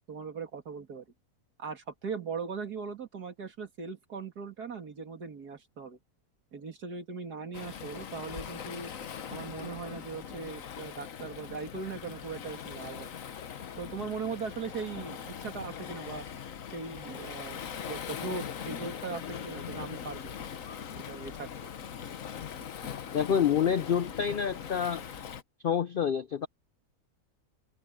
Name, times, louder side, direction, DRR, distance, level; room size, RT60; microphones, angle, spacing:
voice 1, 0.1-1.0 1.6-6.0 6.5-8.9 9.3-13.1 13.8-16.3 16.7-17.6 17.9-20.3 21.1-21.7, right 5 dB, 90° right, 2.8 m, -39 dB
Waves surf, 7.5-25.4, left 8 dB, 60° left, 1.4 m, -41 dB
voice 2, 23.1-25.0 25.6-26.5, left 8 dB, 75° left, 0.4 m, -27 dB
omnidirectional pair, 1.6 m